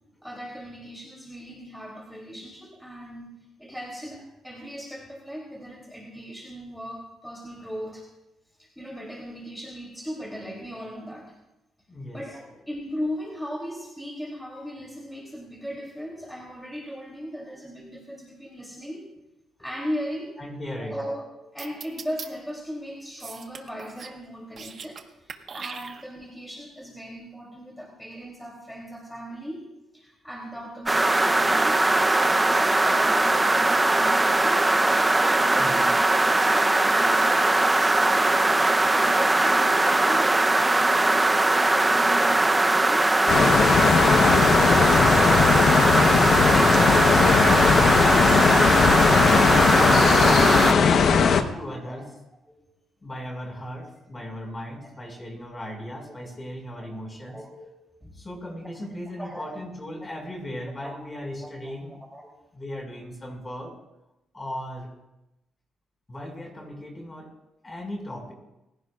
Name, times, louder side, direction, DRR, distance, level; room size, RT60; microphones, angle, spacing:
voice 1, 0.2-8.1 8.6-11.3 12.1-19.1 19.6-20.3 20.8-29.7 29.9-34.6 35.2-38.5 38.8-42.4 42.8-43.1 44.1-44.5 45.1-45.3 46.8-46.9 51.5-52.0 52.5-52.6 56.2-56.3 56.8-57.0 57.3-58.2 59.2-59.6 60.0-60.1 60.8-60.9 61.4-62.3, equal, ahead, -2 dB, 3.2 m, -38 dB
voice 2, 11.9-12.3 20.4-21.0 35.5-35.9 45.9-46.2 46.5-47.6 48.7-52.1 53.0-57.4 58.1-62.0 62.5-63.8 64.3-64.9 66.1-67.3 67.6-68.3, left 1 dB, 25° left, 1 dB, 5.7 m, -37 dB
sound 1, 21.6-22.3 23.2-24.2 24.5-25.0 25.3-26.3, right 6 dB, 50° right, 1.4 m, -39 dB
sound 2, 30.9-50.7, right 2 dB, 15° right, 0.8 m, -20 dB
sound 3, 43.3-51.4, left 6 dB, 60° left, 1.1 m, -19 dB
30.0 x 16.5 x 2.5 m, 0.93 s
cardioid pair, 90°, 0 cm